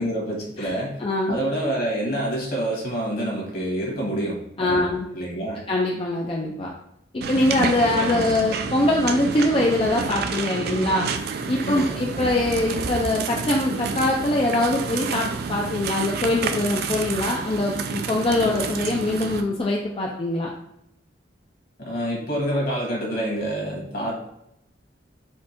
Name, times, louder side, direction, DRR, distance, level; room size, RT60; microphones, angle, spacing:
voice 1, 0.0-1.0 1.3-4.9 5.1-5.6 8.0-8.2 11.6-12.0 21.8-24.2, right 1 dB, 55° left, -3 dB, 1.7 m, -27 dB
voice 2, 1.0-1.4 4.6-5.1 5.7-6.7 7.1-11.1 11.5-20.5, left 2 dB, 30° left, -2 dB, 0.5 m, -23 dB
sound 1, 7.2-19.4, right 5 dB, 60° right, 0.4 m, -29 dB
4.4 x 2.4 x 4.4 m, 0.79 s
head